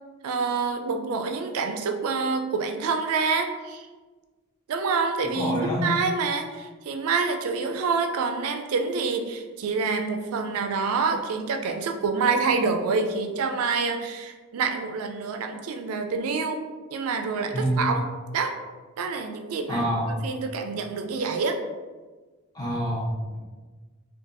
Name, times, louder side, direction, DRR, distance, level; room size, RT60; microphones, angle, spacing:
voice 1, 0.2-3.9 4.7-18.1 18.3-18.6 19.0-19.9 20.2-21.6, right 4 dB, 90° right, 5 dB, 0.4 m, -27 dB
voice 2, 5.3-5.8 17.5-17.9 19.7-20.2 22.5-23.4, equal, 20° left, -6 dB, 0.8 m, -27 dB
2.6 x 2.3 x 3.8 m, 1.3 s
head